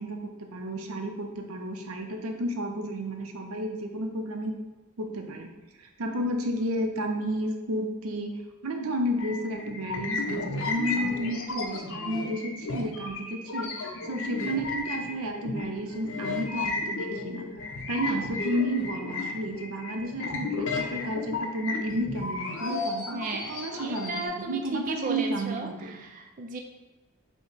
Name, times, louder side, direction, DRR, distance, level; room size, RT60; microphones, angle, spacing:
voice 1, 0.0-4.5 5.0-5.5 6.0-17.5 17.9-26.0, equal, 90° right, 3 dB, 0.6 m, -32 dB
sound 1, 9.2-24.3, left 3 dB, 65° left, 0.7 m, -33 dB
voice 2, 23.1-26.6, right 3 dB, 40° right, 3 dB, 0.4 m, -35 dB
5.1 x 2.1 x 4.9 m, 1.1 s
head